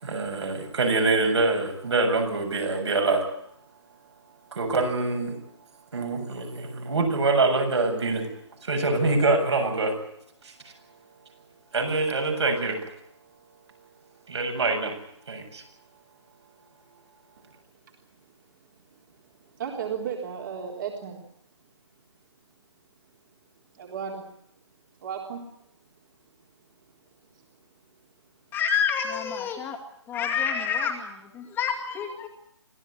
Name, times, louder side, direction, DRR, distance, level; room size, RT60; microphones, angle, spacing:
voice 1, 0.0-3.3 4.5-5.4 5.9-8.3 8.6-10.0 10.4-10.5 11.7-12.8 14.3-14.9 15.3-15.6, right 3 dB, 70° right, 3 dB, 7.7 m, -25 dB
voice 2, 19.6-21.2 23.7-24.2 25.0-25.5, right 7 dB, 45° right, 1 dB, 3.8 m, -33 dB
voice 3, 28.5-29.8 30.1-32.3, left 7 dB, 15° left, 2 dB, 2.3 m, -28 dB
25.0 x 16.0 x 9.5 m, 0.72 s
figure-of-eight pair, 140°, 15 cm